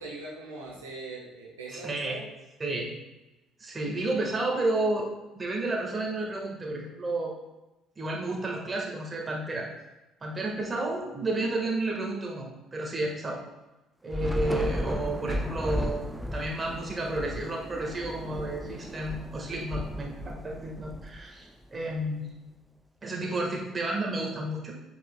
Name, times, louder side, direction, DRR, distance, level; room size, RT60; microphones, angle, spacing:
voice 1, 0.0-2.2, right 2 dB, 80° right, -4 dB, 1.1 m, -41 dB
voice 2, 1.7-2.2 2.6-2.9 3.6-5.1 5.3-7.3 8.0-9.7 10.2-13.4 14.0-16.0 16.3-22.2 23.0-24.7, right 2 dB, 25° right, -1 dB, 1.5 m, -31 dB
Thunder / Rain, 14.1-21.6, equal, 5° right, 0.4 m, -34 dB
7.6 x 5.4 x 2.3 m, 1.0 s
figure-of-eight pair, 50°, 0 cm